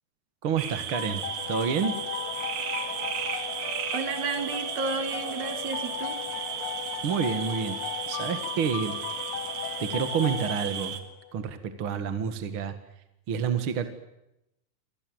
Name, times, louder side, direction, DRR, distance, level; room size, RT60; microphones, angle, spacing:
voice 1, 0.4-1.9 7.0-7.8 8.1-9.0 9.8-11.0 11.3-12.8 13.3-13.9, right 7 dB, 45° right, 8 dB, 2.2 m, -28 dB
sound 1, 0.6-11.0, right 8 dB, 90° right, 3.9 m, -35 dB
sound 2, 0.9-11.3, left 11 dB, 65° left, 2.4 m, -36 dB
voice 2, 3.9-6.2, right 4 dB, 60° right, 7 dB, 3.7 m, -32 dB
28.0 x 25.0 x 7.9 m, 0.88 s
omnidirectional pair, 3.9 m